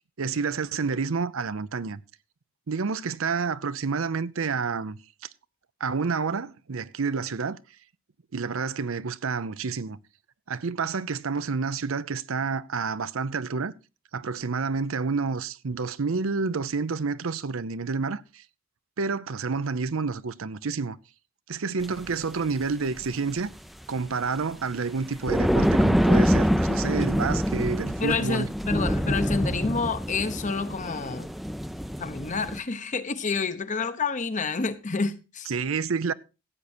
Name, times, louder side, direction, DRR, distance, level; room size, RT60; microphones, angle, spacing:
voice 1, 0.2-2.0 2.7-5.0 5.8-7.6 8.3-10.0 10.5-13.7 14.1-18.4 19.0-21.0 21.5-23.5 23.9-28.5 35.5-36.1, right 4 dB, 70° right, 0.6 m, -29 dB
sound 1, 21.8-22.1 23.0-23.1 23.4-23.5 25.1-32.6, equal, ahead, 0.5 m, -25 dB
voice 2, 28.0-31.3 32.0-35.5, left 4 dB, 35° left, 0.9 m, -29 dB
15.0 x 8.3 x 4.3 m
head